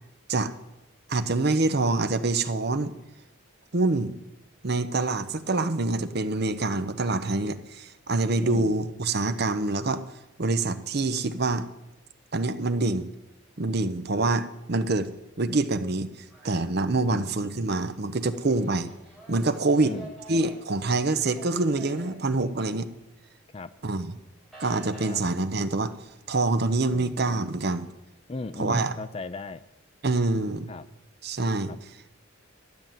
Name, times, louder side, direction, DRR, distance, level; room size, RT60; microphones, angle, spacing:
voice 1, 1.1-2.9 3.7-4.1 4.6-10.0 10.4-11.7 12.3-13.1 13.6-15.1 15.4-16.1 16.4-18.9 19.3-19.9 20.3-22.9 23.8-24.1 24.6-25.9 26.3-27.9 28.6-28.9 30.0-30.7 31.2-31.7, right 2 dB, 50° right, 11 dB, 0.8 m, -26 dB
voice 2, 8.4-8.8 17.1-17.3 19.8-20.1 23.5-23.7 25.1-25.2 26.9-27.2 28.3-29.6 30.7-30.9 31.7-31.8, left 3 dB, 30° left, 14 dB, 0.4 m, -37 dB
sound 1, 16.3-17.4 17.7-23.2 23.5-25.1, right 2 dB, ahead, 4.6 m, -48 dB
12.5 x 7.3 x 9.1 m, 0.94 s
head